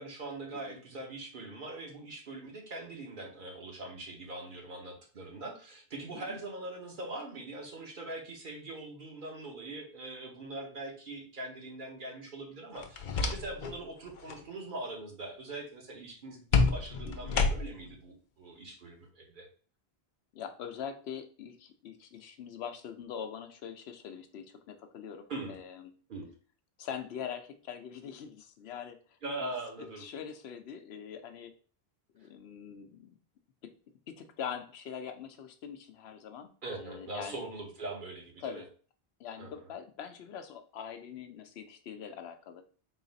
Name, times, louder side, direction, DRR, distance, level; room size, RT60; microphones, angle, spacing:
voice 1, 0.0-19.5 25.3-25.6 26.1-26.3 29.2-30.0 36.6-38.6 39.4-39.6, right 2 dB, 55° right, 1 dB, 1.1 m, -42 dB
sound 1, 12.8-13.8 14.1-14.4 16.5-17.9, left 4 dB, 60° left, 0.6 m, -29 dB
voice 2, 17.0-17.4 20.3-25.9 26.8-29.0 29.4-29.5 29.8-31.5 32.1-33.1 33.6-33.7 34.1-37.4 38.4-38.6 39.2-42.7, left 8 dB, 85° left, 8 dB, 0.8 m, -43 dB
3.9 x 2.4 x 3.9 m, 0.41 s
omnidirectional pair, 1.1 m